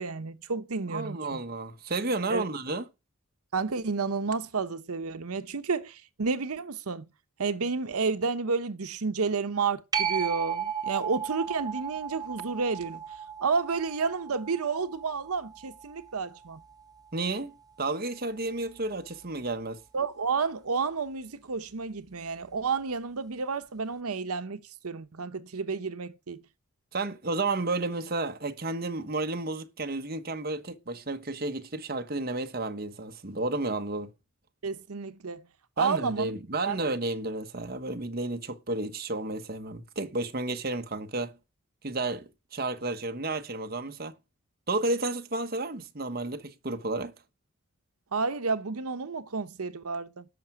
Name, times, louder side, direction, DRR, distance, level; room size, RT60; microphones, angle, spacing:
voice 1, 0.0-1.4 2.3-2.5 3.5-7.1 7.4-16.6 19.9-26.4 34.6-35.4 35.8-36.3 36.6-36.8 48.1-50.2, right 4 dB, 85° right, 0.8 m, -31 dB
voice 2, 0.9-2.8 17.1-17.5 17.8-19.8 26.9-34.1 35.8-41.3 41.8-44.1 44.7-47.1, right 2 dB, 45° right, 1.2 m, -32 dB
sound 1, 9.9-17.1 22.6-22.7, right 8 dB, 15° right, 1.4 m, -35 dB
13.0 x 5.9 x 9.1 m
head